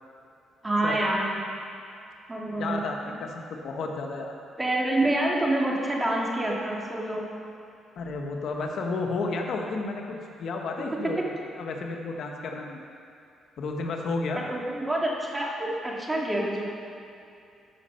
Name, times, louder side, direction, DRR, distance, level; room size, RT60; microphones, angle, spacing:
voice 1, 0.6-1.4 2.3-2.8 3.1-3.2 4.6-7.3 10.9-11.3 14.3-16.6, right 1 dB, 15° right, -2 dB, 2.1 m, -27 dB
voice 2, 2.5-4.3 8.0-12.8 13.6-14.4, left 3 dB, 65° left, 1 dB, 1.2 m, -32 dB
13.5 x 6.3 x 5.6 m, 2.6 s
cardioid pair, 90°, 0 cm